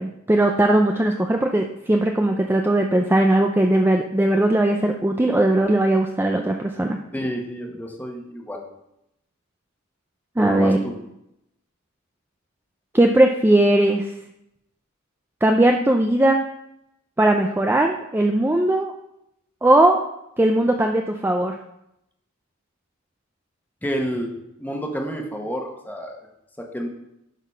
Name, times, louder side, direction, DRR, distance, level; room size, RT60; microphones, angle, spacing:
voice 1, 0.0-7.0 10.4-10.8 12.9-14.1 15.4-16.4 17.2-18.9 19.6-20.0 20.4-21.6, right 1 dB, 10° right, 3 dB, 0.4 m, -19 dB
voice 2, 7.1-8.6 10.4-11.0 23.8-24.3 24.6-26.2 26.7-26.9, equal, 10° left, 1 dB, 1.1 m, -29 dB
11.0 x 4.0 x 5.5 m, 0.84 s
head